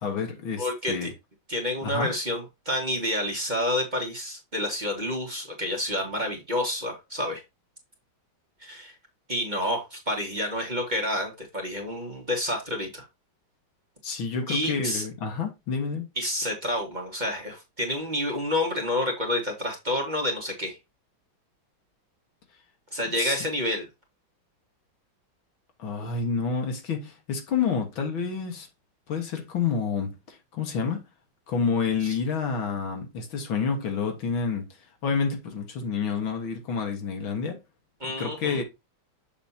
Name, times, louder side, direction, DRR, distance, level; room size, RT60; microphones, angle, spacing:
voice 1, 0.0-1.1 1.8-2.1 14.0-16.1 23.2-23.4 25.8-28.7 29.1-31.0 31.5-34.7 35.0-37.6 38.0-38.6, left 5 dB, 75° left, 2.3 m, -29 dB
voice 2, 0.6-1.1 1.5-7.4 8.6-8.9 9.3-13.1 14.5-15.0 16.2-20.8 22.9-23.9 38.0-38.6, left 1 dB, 25° right, 1.7 m, -29 dB
7.2 x 6.0 x 2.8 m
omnidirectional pair, 2.2 m